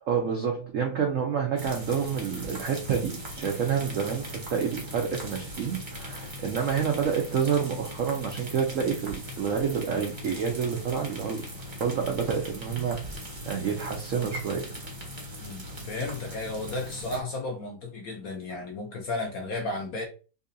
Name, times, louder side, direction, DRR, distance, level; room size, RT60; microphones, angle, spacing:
voice 1, 0.0-11.4 11.8-13.1 13.5-14.7, right 7 dB, 70° right, 0.7 m, -28 dB
sound 1, 1.6-17.2, equal, 30° right, 0.5 m, -39 dB
voice 2, 15.4-20.0, left 2 dB, 60° left, 1.0 m, -34 dB
3.8 x 2.7 x 2.6 m
omnidirectional pair, 2.1 m